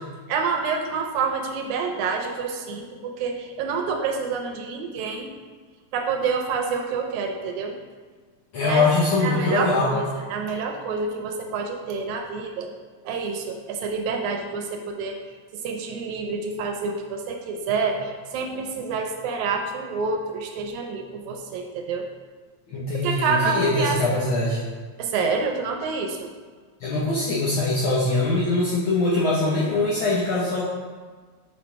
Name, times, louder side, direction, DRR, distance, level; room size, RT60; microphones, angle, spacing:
voice 1, 0.3-5.3 5.9-7.8 8.6-8.9 9.2-10.1 10.3-12.7 13.1-15.2 15.6-22.1 23.0-24.2 25.0-26.3, right 5 dB, 85° right, 3 dB, 2.0 m, -28 dB
voice 2, 8.5-9.9 22.7-24.6 26.8-30.6, left 2 dB, 80° left, -6 dB, 1.1 m, -22 dB
6.0 x 4.0 x 4.5 m, 1.5 s
omnidirectional pair, 3.3 m